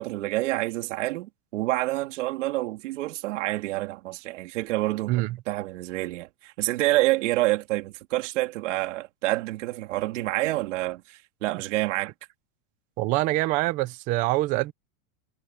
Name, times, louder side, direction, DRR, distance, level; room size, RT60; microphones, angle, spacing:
voice 1, 0.0-5.1 5.5-12.1, right 18 dB, 75° right, 3.5 m, -28 dB
voice 2, 13.0-14.7, right 18 dB, 20° right, 0.4 m, -25 dB
supercardioid pair, 170°, 37 cm